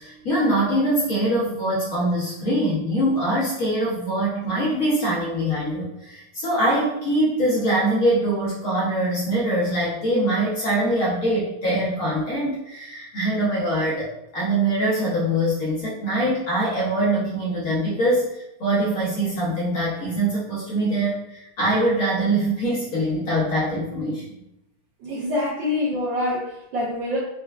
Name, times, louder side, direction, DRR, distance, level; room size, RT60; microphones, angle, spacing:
voice 1, 0.0-24.4, right 1 dB, 60° left, -7 dB, 0.9 m, -23 dB
voice 2, 25.0-27.2, left 1 dB, 70° right, -5 dB, 1.2 m, -25 dB
4.2 x 2.3 x 2.2 m, 0.86 s
omnidirectional pair, 2.4 m